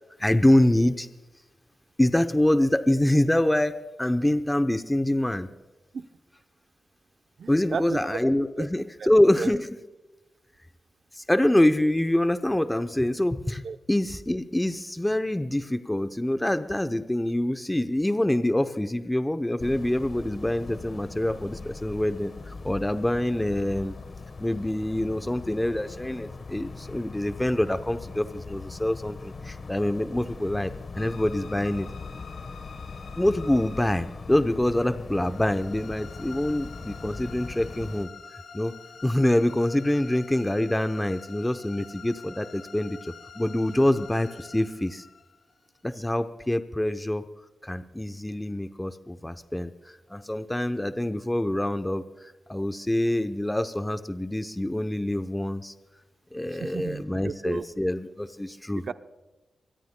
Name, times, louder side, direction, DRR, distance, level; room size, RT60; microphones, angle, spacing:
voice 1, 0.2-1.1 2.0-5.5 7.5-9.7 11.1-23.9 24.4-31.9 33.2-38.7 39.0-45.1 45.8-47.2 47.6-55.7 56.3-58.8, left 1 dB, 10° left, 9 dB, 0.7 m, -25 dB
voice 2, 7.4-8.2 8.6-8.7 9.0-9.1 9.4-9.5 13.6-13.8 43.8-44.0 56.5-57.6 58.7-58.9, right 5 dB, 65° right, 10 dB, 0.6 m, -34 dB
sound 1, 19.6-38.1, left 4 dB, 50° left, 1.1 m, -41 dB
sound 2, 31.0-46.0, left 5 dB, 75° left, 2.1 m, -47 dB
24.0 x 20.5 x 2.2 m, 1.1 s
cardioid pair, 75°, 0 cm